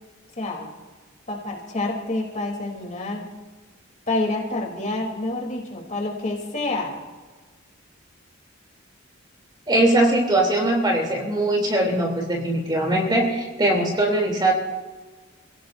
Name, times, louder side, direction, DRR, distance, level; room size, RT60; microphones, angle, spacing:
voice 1, 0.4-0.7 1.3-3.3 4.1-7.0, left 2 dB, 35° left, -1 dB, 3.2 m, -28 dB
voice 2, 9.7-14.5, right 1 dB, 20° right, 0 dB, 3.0 m, -21 dB
29.0 x 17.0 x 2.6 m, 1.3 s
head